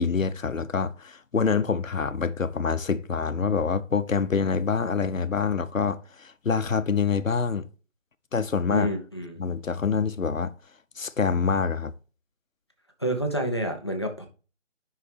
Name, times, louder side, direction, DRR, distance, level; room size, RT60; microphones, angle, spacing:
voice 1, 0.0-7.7 8.3-8.9 9.4-10.5 11.0-11.9, left 5 dB, 85° left, 0.8 m, -26 dB
voice 2, 8.7-9.4 13.0-14.3, equal, 20° left, 0.6 m, -28 dB
9.7 x 5.6 x 3.4 m
figure-of-eight pair, 160°, 39 cm